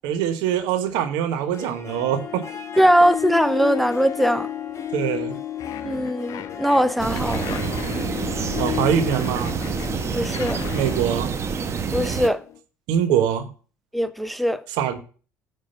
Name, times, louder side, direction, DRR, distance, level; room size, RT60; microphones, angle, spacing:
voice 1, 0.0-2.4 2.8-2.9 4.9-5.4 8.6-9.5 10.7-11.3 12.9-13.5 14.8-15.0, right 9 dB, 70° right, 1.0 m, -23 dB
Harp, 1.4-12.6, left 10 dB, 40° left, 1.0 m, -33 dB
voice 2, 2.8-4.5 5.8-7.6 10.1-10.6 11.9-12.4 13.9-14.6, equal, ahead, 0.5 m, -20 dB
sound 1, 5.6-11.0, left 10 dB, 60° left, 0.6 m, -38 dB
sound 2, 7.0-12.3, right 6 dB, 40° right, 0.9 m, -27 dB
8.8 x 3.8 x 5.3 m
hypercardioid pair, 65°, 8 cm